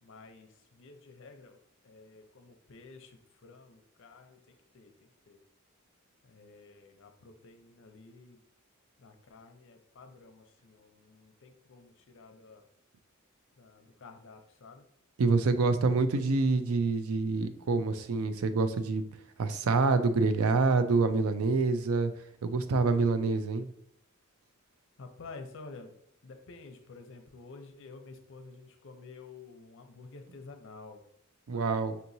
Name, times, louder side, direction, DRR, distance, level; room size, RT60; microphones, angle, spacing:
voice 1, 0.0-1.6 1.8-4.9 5.3-5.4 6.2-8.4 9.0-12.7 13.6-14.9 16.0-16.3 25.0-25.9 26.2-31.0 31.5-31.9, left 3 dB, 65° left, 6 dB, 0.6 m, -51 dB
voice 2, 15.2-19.1 19.4-22.1 22.4-23.7 31.5-32.0, right 3 dB, 90° right, 10 dB, 0.4 m, -26 dB
5.5 x 2.9 x 2.6 m, 0.70 s
head